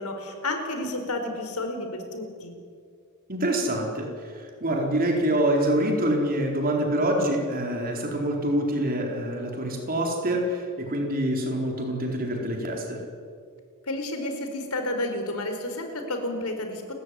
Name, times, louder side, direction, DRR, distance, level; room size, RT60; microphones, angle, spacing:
voice 1, 0.0-2.5 13.9-16.9, left 1 dB, 85° left, 6 dB, 4.5 m, -31 dB
voice 2, 3.3-13.0, right 1 dB, 40° right, 1 dB, 4.4 m, -26 dB
30.0 x 15.0 x 9.7 m, 2.2 s
head